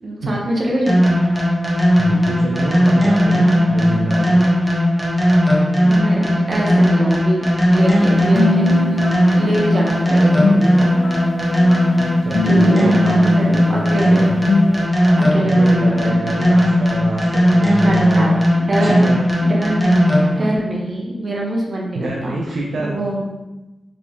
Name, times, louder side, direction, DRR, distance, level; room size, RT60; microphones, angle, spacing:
voice 1, 0.0-1.0 5.8-9.0 9.4-10.9 12.4-14.3 15.1-16.2 17.8-19.1 19.4-23.3, right 1 dB, 55° right, -2 dB, 1.2 m, -24 dB
sound 1, 0.9-20.5, equal, 10° right, 1.3 m, -16 dB
voice 2, 2.0-4.5 12.0-14.3 15.6-18.4 18.8-19.2 21.9-23.0, right 2 dB, 85° right, -2 dB, 0.5 m, -26 dB
sound 2, 7.8-14.9, left 3 dB, 75° left, 0.4 m, -24 dB
4.2 x 3.3 x 3.1 m, 1.0 s
cardioid pair, 50°, 0 cm